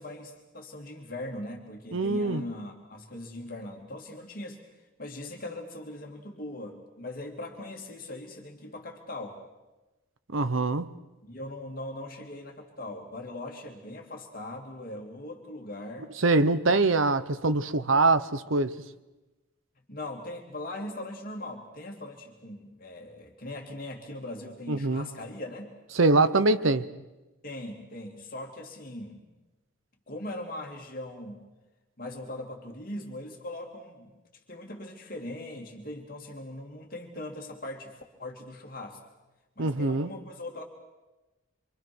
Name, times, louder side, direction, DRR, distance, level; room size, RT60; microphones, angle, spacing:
voice 1, 0.0-4.6 5.0-9.4 11.2-16.1 16.7-16.8 19.9-25.7 27.4-29.2 30.1-31.4 32.0-34.1 34.5-39.0 39.6-40.6, left 1 dB, 45° left, 1 dB, 2.8 m, -40 dB
voice 2, 1.9-2.4 10.3-10.9 16.2-18.7 24.7-25.1 26.0-26.8 39.6-40.1, right 3 dB, 80° right, 12 dB, 1.0 m, -23 dB
26.5 x 25.0 x 6.2 m, 1.1 s
head